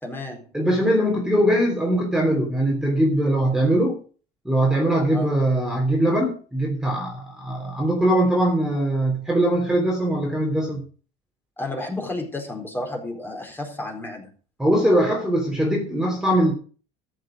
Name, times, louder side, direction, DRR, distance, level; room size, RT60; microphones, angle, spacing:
voice 1, 0.0-0.5 5.1-5.3 11.6-14.3, left 2 dB, 10° left, 2 dB, 4.2 m, -32 dB
voice 2, 0.5-4.0 4.5-10.8 14.6-16.5, right 1 dB, 5° right, 0 dB, 3.4 m, -21 dB
14.0 x 6.6 x 6.3 m, 0.39 s
supercardioid pair, 115°, 17 cm